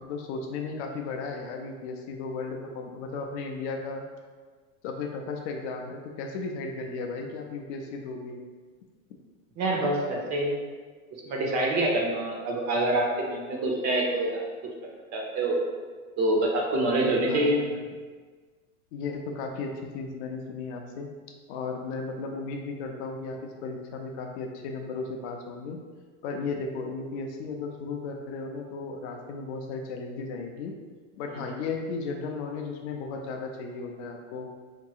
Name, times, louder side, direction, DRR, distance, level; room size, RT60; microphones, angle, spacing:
voice 1, 0.0-4.0 4.8-8.4 17.3-17.8 18.9-21.1 21.5-25.8 26.2-30.7 31.2-34.5, left 4 dB, 50° left, 2 dB, 0.6 m, -35 dB
voice 2, 9.6-10.6 11.2-14.7 15.1-15.6 16.2-17.6, right 1 dB, 40° right, -1 dB, 0.8 m, -26 dB
4.5 x 2.8 x 2.4 m, 1.5 s
hypercardioid pair, 115°, 44 cm